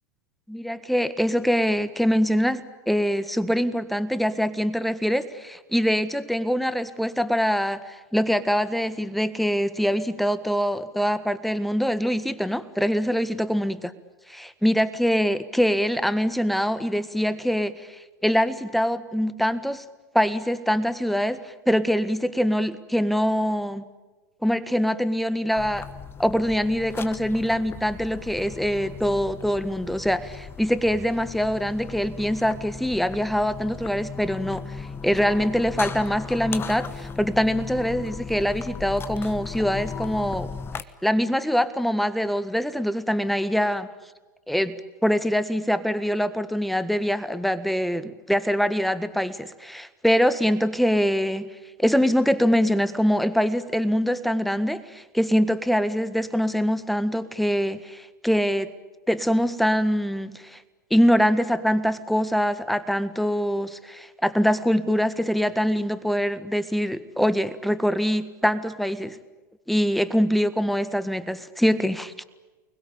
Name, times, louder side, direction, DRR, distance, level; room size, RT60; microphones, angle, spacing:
voice 1, 0.5-13.8 14.3-19.8 20.1-23.8 24.4-25.9 26.2-40.5 41.0-43.9 44.5-44.8 45.0-51.5 51.8-58.7 59.1-60.6 60.9-69.2 69.7-72.2, equal, ahead, 13 dB, 1.6 m, -24 dB
sound 1, 25.6-40.8, left 6 dB, 25° left, 1.3 m, -37 dB
29.5 x 21.0 x 8.7 m, 1.2 s
figure-of-eight pair, 90°, 10 cm